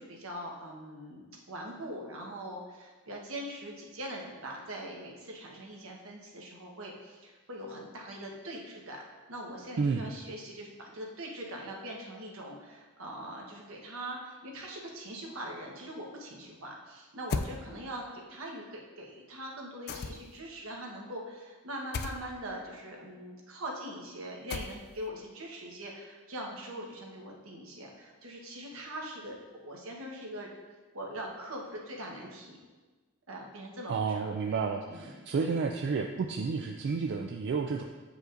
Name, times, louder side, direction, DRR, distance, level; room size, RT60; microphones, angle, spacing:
voice 1, 0.0-30.5 30.9-32.6 33.3-34.6 34.9-35.6, right 1 dB, 80° right, -1 dB, 1.1 m, -42 dB
voice 2, 9.8-10.1 33.9-37.8, right 5 dB, 55° right, 3 dB, 0.3 m, -31 dB
sound 1, 17.3-17.6 19.9-20.4 21.9-22.2 24.5-25.0, left 4 dB, 50° left, 0.3 m, -34 dB
7.9 x 4.9 x 2.5 m, 1.3 s
head